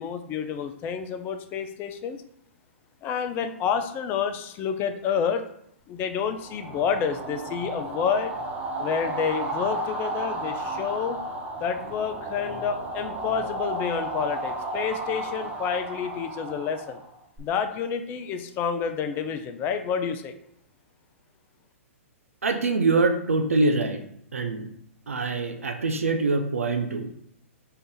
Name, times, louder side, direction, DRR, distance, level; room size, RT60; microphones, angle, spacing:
voice 1, 0.0-2.2 3.0-5.4 5.9-8.3 8.8-11.2 11.6-17.0 17.4-20.3, left 7 dB, 25° left, 8 dB, 0.4 m, -29 dB
sound 1, 6.3-17.4, right 2 dB, 20° right, 0.7 m, -33 dB
voice 2, 22.4-24.0 24.3-24.6 25.1-27.1, right 3 dB, 85° right, 6 dB, 0.5 m, -24 dB
4.4 x 2.5 x 3.7 m, 0.71 s
hypercardioid pair, 120°, 7 cm